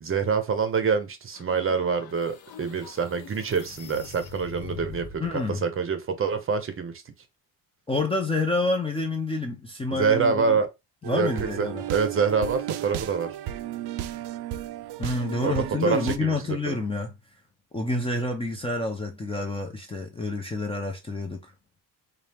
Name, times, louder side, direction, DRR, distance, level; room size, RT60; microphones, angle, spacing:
voice 1, 0.0-5.2 5.6-7.0 9.9-10.7 11.1-13.4 15.4-16.7, right 5 dB, 30° right, 0.6 m, -26 dB
sound 1, 1.3-5.4, left 6 dB, 65° left, 0.8 m, -43 dB
voice 2, 5.2-5.6 7.9-10.6 11.1-11.8 15.0-17.1 17.7-21.5, left 2 dB, 15° left, 0.5 m, -28 dB
sound 2, 11.0-16.2, right 12 dB, 75° right, 0.5 m, -34 dB
4.2 x 2.4 x 3.3 m
cardioid pair, 150°, 40 cm